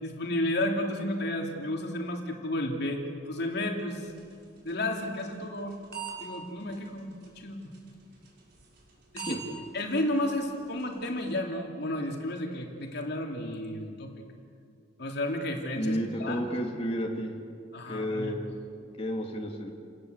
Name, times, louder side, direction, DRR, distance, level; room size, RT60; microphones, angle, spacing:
voice 1, 0.0-4.1 4.6-5.8 6.2-7.7 9.1-9.4 9.7-14.1 15.0-16.4 17.7-18.4, left 1 dB, 60° left, 2 dB, 3.1 m, -32 dB
sound 1, 3.9-11.2, right 6 dB, 60° right, 6.2 m, -46 dB
voice 2, 15.8-17.3 17.9-18.6 19.0-19.7, equal, 30° left, 0 dB, 2.6 m, -31 dB
29.5 x 19.0 x 8.1 m, 2.4 s
head